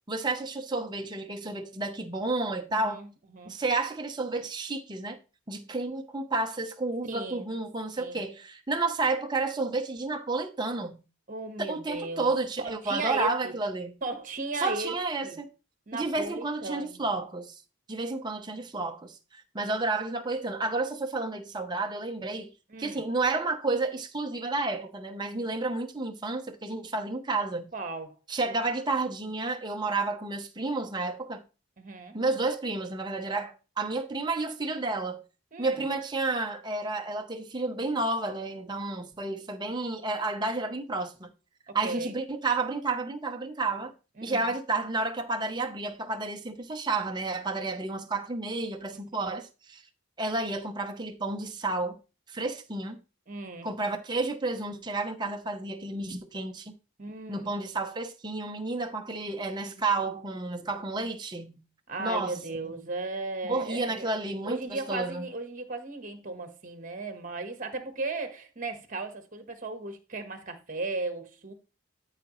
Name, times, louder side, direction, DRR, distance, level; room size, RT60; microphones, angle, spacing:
voice 1, 0.1-3.0 3.5-5.2 5.5-11.0 11.6-13.9 14.6-15.5 15.9-17.6 17.9-22.5 22.8-27.7 28.3-31.4 32.1-35.2 35.6-41.3 41.7-43.9 44.2-49.8 50.2-52.0 52.3-53.0 53.6-56.7 57.3-61.6 62.0-62.4 62.6-62.8 63.4-65.2, right 3 dB, 20° right, 0.8 m, -31 dB
voice 2, 2.7-3.6 7.1-7.4 8.0-8.2 11.3-12.3 12.6-13.5 14.0-15.0 15.2-15.4 15.9-17.0 18.3-18.6 22.7-23.0 27.7-28.2 31.8-32.2 35.5-35.8 41.7-42.2 44.2-44.5 49.1-49.3 53.3-53.7 57.0-57.6 61.9-64.2 64.4-71.5, right 3 dB, 40° right, 1.3 m, -36 dB
12.5 x 4.8 x 3.1 m
head